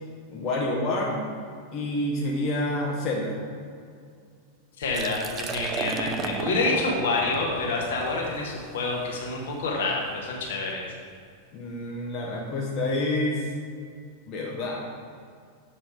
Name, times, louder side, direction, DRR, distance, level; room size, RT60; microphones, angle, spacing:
voice 1, 0.3-1.2 1.7-3.4 11.5-13.5 14.3-14.9, left 1 dB, 35° left, -3 dB, 1.3 m, -28 dB
voice 2, 4.8-10.8, left 3 dB, 60° left, -2 dB, 1.5 m, -27 dB
Liquid, 4.8-10.6, right 6 dB, 25° right, 0.5 m, -36 dB
7.6 x 5.9 x 5.0 m, 2.2 s
figure-of-eight pair, 90°, 0 cm